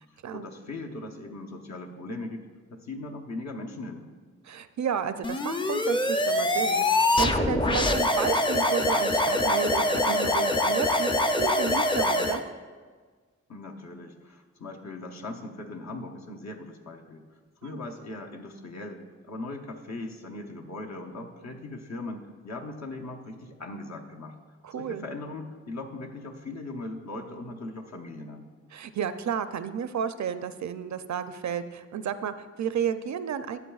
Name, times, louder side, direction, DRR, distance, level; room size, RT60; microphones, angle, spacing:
voice 1, 0.1-4.1 13.5-17.2 17.6-24.3 24.7-28.5, left 2 dB, 65° left, 1 dB, 0.9 m, -39 dB
voice 2, 4.4-12.4 17.6-17.8 24.6-25.0 28.7-33.6, right 7 dB, 70° right, 11 dB, 0.5 m, -32 dB
sound 1, 5.2-12.4, left 1 dB, 15° left, 0.5 m, -24 dB
12.0 x 7.4 x 2.4 m, 1.5 s
cardioid pair, 60°, 29 cm